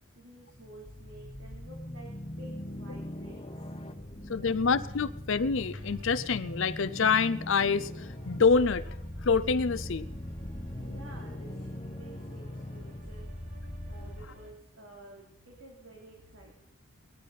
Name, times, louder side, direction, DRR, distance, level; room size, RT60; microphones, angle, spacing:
voice 1, 0.1-3.7 10.5-13.3 13.9-16.5, right 1 dB, 60° right, -1 dB, 3.2 m, -51 dB
sound 1, 0.5-14.3, left 1 dB, 25° left, 1.2 m, -40 dB
voice 2, 4.3-9.0 9.2-10.1, left 5 dB, 60° left, 14 dB, 0.5 m, -26 dB
sound 2, 5.7-14.5, right 1 dB, 35° right, 5.8 m, -55 dB
19.5 x 13.0 x 4.1 m, 0.82 s
head